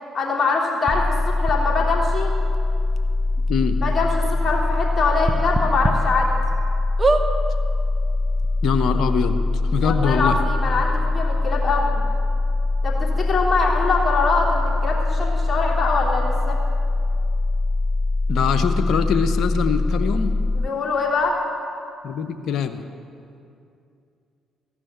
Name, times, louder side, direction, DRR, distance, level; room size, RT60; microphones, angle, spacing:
voice 1, 0.1-2.3 3.8-6.3 9.8-12.0 12.8-16.6 20.5-21.4, left 4 dB, 35° left, -3 dB, 3.3 m, -23 dB
sound 1, 0.9-20.7, left 2 dB, 15° left, 0.3 m, -22 dB
sound 2, 0.9-1.0 1.5-1.6 2.5-2.6 2.9-3.0 3.5-3.6 5.2-5.9 6.4-6.5 7.0-7.3 8.1-8.2 8.4-8.5, right 3 dB, 30° right, 1.0 m, -22 dB
voice 2, 3.5-3.8 8.6-9.4 9.7-10.3 18.3-20.3 22.0-22.8, left 6 dB, 65° left, 8 dB, 0.8 m, -23 dB
15.0 x 6.2 x 9.4 m, 2.5 s
hypercardioid pair, 50°, 0 cm